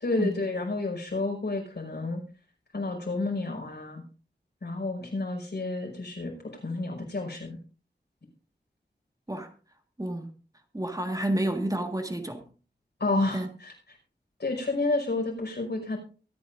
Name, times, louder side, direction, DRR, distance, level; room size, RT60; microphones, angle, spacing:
voice 1, 0.0-2.2 2.7-4.0 4.6-6.3 6.6-7.6 13.0-13.7 14.4-16.0, left 2 dB, 65° left, 5.4 m, -30 dB
voice 2, 10.0-10.3 10.7-12.4 13.3-13.5, right 1 dB, 20° right, 1.7 m, -30 dB
23.5 x 9.0 x 2.6 m
wide cardioid pair, 65°, 18 cm